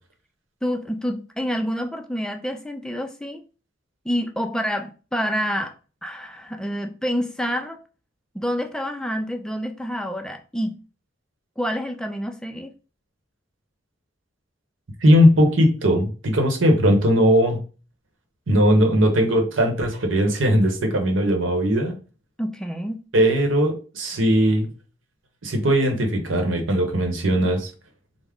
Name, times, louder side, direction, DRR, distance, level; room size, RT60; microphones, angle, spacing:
voice 1, 0.6-3.4 4.1-5.7 6.0-7.8 8.3-10.8 11.6-12.7 22.4-23.0, equal, 5° left, 0.3 m, -28 dB
voice 2, 15.0-17.6 18.5-21.9 23.1-24.7 25.4-27.7, equal, 90° right, 0.9 m, -19 dB
3.5 x 2.0 x 3.5 m
head